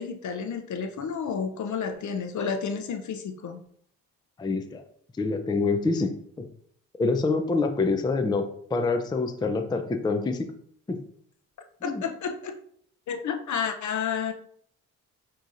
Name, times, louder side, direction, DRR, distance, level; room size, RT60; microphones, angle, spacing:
voice 1, 0.0-3.6 11.8-12.5 13.1-14.3, left 6 dB, 55° left, 7 dB, 0.7 m, -31 dB
voice 2, 4.4-4.8 5.2-6.1 6.4-6.5 7.0-8.4 8.7-10.5 10.9-11.0 11.8-12.0, left 3 dB, 10° left, 7 dB, 0.4 m, -26 dB
6.1 x 2.9 x 2.6 m, 0.62 s
supercardioid pair, 65°, 36 cm